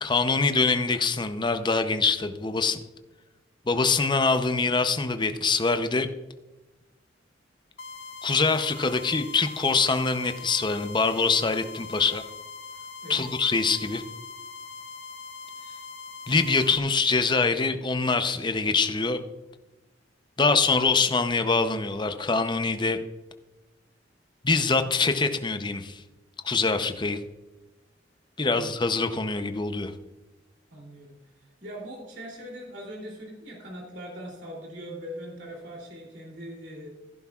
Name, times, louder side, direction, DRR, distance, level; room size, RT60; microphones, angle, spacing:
voice 1, 0.0-2.8 3.7-6.1 8.2-12.2 13.1-14.0 16.3-19.2 20.4-23.0 24.4-26.0 26.4-27.2 28.4-29.9, left 4 dB, 25° left, 8 dB, 0.7 m, -24 dB
sound 1, 7.8-16.8, left 4 dB, 75° left, 0.9 m, -42 dB
voice 2, 30.7-36.9, equal, 70° right, -3 dB, 3.0 m, -41 dB
16.0 x 10.5 x 2.4 m, 1.1 s
head